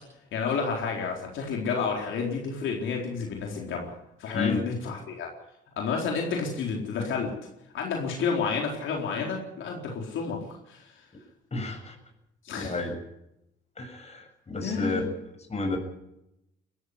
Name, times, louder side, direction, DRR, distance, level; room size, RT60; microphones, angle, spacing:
voice 1, 0.3-3.9 4.2-5.3 5.8-7.3 7.7-10.4 10.7-10.9 12.4-12.8 14.6-15.0, left 5 dB, 75° left, 0 dB, 4.2 m, -30 dB
voice 2, 11.5-12.0 12.6-13.0 13.8-15.0 15.5-15.8, left 3 dB, 35° left, 4 dB, 6.9 m, -31 dB
21.5 x 14.5 x 9.8 m, 0.87 s
cardioid pair, 90°, 20 cm